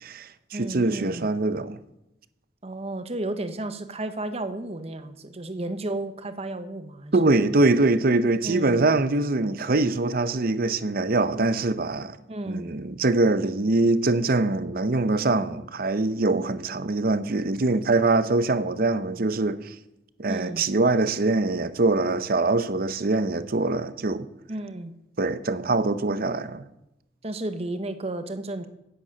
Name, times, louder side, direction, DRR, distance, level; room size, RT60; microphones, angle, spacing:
voice 1, 0.0-1.8 7.1-12.2 12.5-19.7 20.2-24.3 25.2-26.6, right 2 dB, 55° right, 0.7 m, -23 dB
voice 2, 0.5-1.3 2.6-7.3 8.4-8.8 12.3-12.7 20.3-20.6 24.5-24.9 27.2-28.7, right 2 dB, 35° right, 1.0 m, -33 dB
10.0 x 7.9 x 8.7 m
head